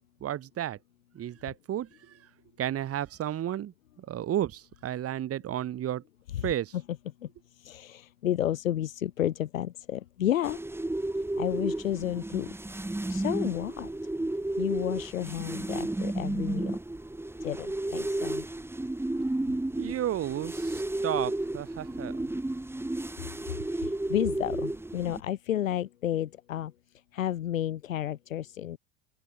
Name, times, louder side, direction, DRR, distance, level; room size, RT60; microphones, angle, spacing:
voice 1, 0.2-0.8 1.1-2.2 2.6-3.7 4.0-6.0 6.4-6.7 19.8-22.3, right 11 dB, 35° right, 5.0 m, -32 dB
voice 2, 7.6-10.6 11.4-12.5 13.1-13.9 14.6-16.8 17.4-18.4 23.8-26.7 27.1-28.8, left 11 dB, 85° left, 4.9 m, -31 dB
sound 1, 10.4-25.2, right 1 dB, 5° right, 7.5 m, -32 dB
open air
hypercardioid pair, 100°, 39 cm